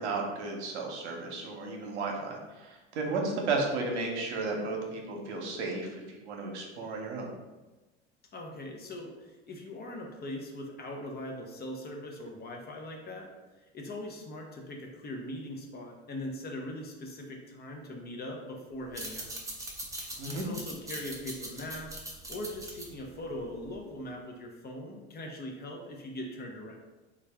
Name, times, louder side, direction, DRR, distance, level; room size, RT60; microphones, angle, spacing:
voice 1, 0.0-7.3 20.2-20.5, right 3 dB, 80° right, 0 dB, 0.8 m, -34 dB
voice 2, 8.3-13.3 13.7-19.3 20.3-21.9 22.3-26.8, left 1 dB, 30° left, 1 dB, 0.7 m, -40 dB
sound 1, 18.8-24.0, right 1 dB, 10° right, 0.7 m, -42 dB
3.4 x 2.3 x 3.4 m, 1.1 s
hypercardioid pair, 85°, 34 cm